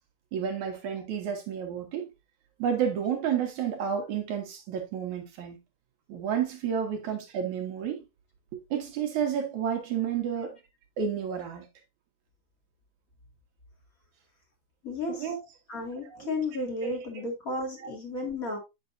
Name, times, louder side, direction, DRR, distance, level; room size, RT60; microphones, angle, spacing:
voice 1, 0.3-2.1 2.6-5.6 6.1-8.0 8.5-10.6 11.0-11.7 15.1-15.6 16.0-16.3 16.8-17.2 17.8-17.9, right 8 dB, 65° right, 2.3 m, -31 dB
voice 2, 14.8-15.3 15.7-18.6, left 2 dB, 30° left, 2.0 m, -33 dB
8.6 x 6.1 x 2.6 m
omnidirectional pair, 4.0 m